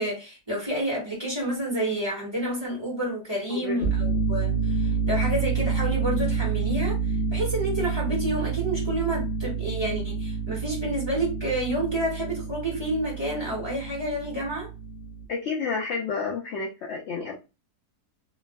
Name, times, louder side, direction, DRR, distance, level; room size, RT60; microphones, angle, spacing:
voice 1, 0.0-14.7, right 1 dB, 20° right, 1.2 m, -29 dB
voice 2, 3.5-3.8 4.5-4.7 15.3-17.3, left 5 dB, 70° left, 0.6 m, -30 dB
sound 1, 3.7-15.2, right 5 dB, 45° left, 0.8 m, -28 dB
3.1 x 2.5 x 2.2 m
omnidirectional pair, 1.7 m